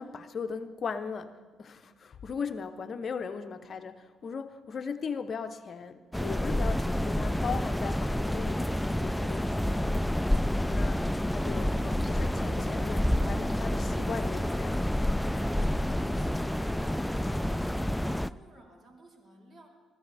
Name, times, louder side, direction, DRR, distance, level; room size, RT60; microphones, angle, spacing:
voice 1, 0.0-15.0 15.3-15.7, left 5 dB, 50° left, 8 dB, 0.8 m, -38 dB
sound 1, 6.1-18.3, left 1 dB, 5° left, 0.3 m, -28 dB
voice 2, 15.6-19.7, right 1 dB, 45° right, 0 dB, 3.6 m, -53 dB
23.5 x 15.0 x 3.4 m, 1.4 s
cardioid pair, 80°, 0 cm